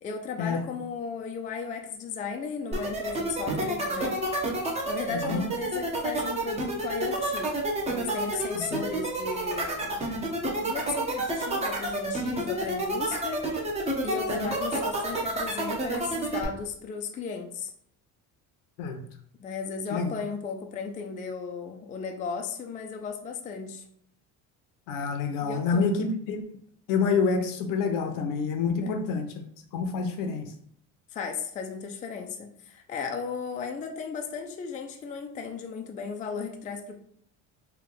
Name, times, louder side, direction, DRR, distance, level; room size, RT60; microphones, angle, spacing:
voice 1, 0.0-4.2 4.9-7.5 7.9-10.0 10.6-13.4 14.0-17.7 19.4-23.8 25.4-26.1 28.7-28.9 31.1-37.0, left 5 dB, 25° left, 3 dB, 0.3 m, -35 dB
sound 1, 2.7-16.4, right 2 dB, 20° right, 0.7 m, -29 dB
voice 2, 5.1-5.4 8.5-8.8 18.8-19.0 19.9-20.1 24.9-26.4 26.9-29.3 29.7-30.5, left 5 dB, 70° left, 6 dB, 0.7 m, -27 dB
3.3 x 2.3 x 3.7 m, 0.64 s
cardioid pair, 130°, 34 cm